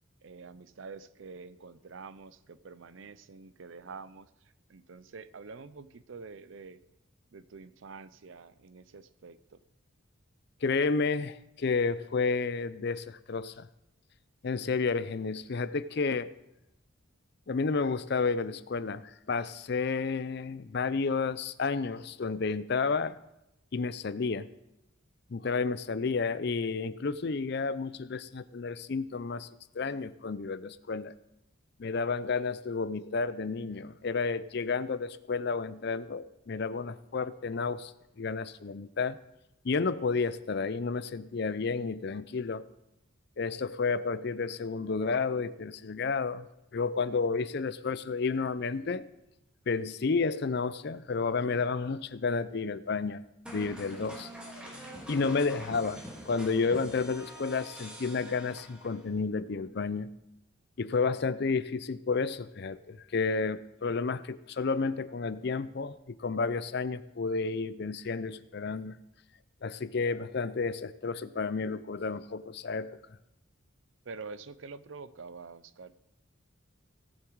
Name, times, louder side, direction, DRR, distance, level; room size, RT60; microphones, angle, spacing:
voice 1, 0.2-6.8 7.3-9.6 74.0-75.9, right 4 dB, 65° right, 15 dB, 0.5 m, -47 dB
voice 2, 10.6-13.7 14.4-16.3 17.5-23.2 23.7-24.5 25.3-29.5 29.7-31.1 31.8-37.9 38.2-39.2 39.6-42.6 43.4-46.5 46.7-49.1 49.7-53.2 53.5-54.3 55.1-60.1 60.8-69.0 69.6-73.0, left 4 dB, 50° left, 16 dB, 0.5 m, -31 dB
sound 1, 53.5-59.1, equal, 5° right, 2.1 m, -45 dB
17.5 x 7.4 x 4.7 m, 0.87 s
head